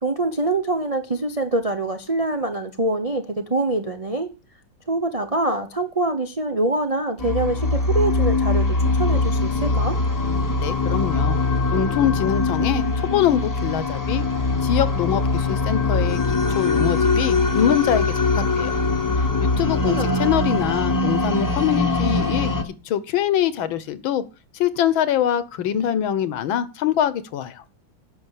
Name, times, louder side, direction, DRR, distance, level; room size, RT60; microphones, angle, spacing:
voice 1, 0.0-4.3 4.9-10.0 19.9-20.3, right 2 dB, 50° right, 0.4 m, -24 dB
sound 1, 7.2-22.6, left 3 dB, 15° left, 0.8 m, -22 dB
voice 2, 10.6-11.4 11.7-14.2 14.6-16.2 16.5-18.8 19.4-24.2 24.5-27.6, left 10 dB, 80° left, 1.8 m, -23 dB
10.0 x 6.5 x 8.1 m
omnidirectional pair, 2.2 m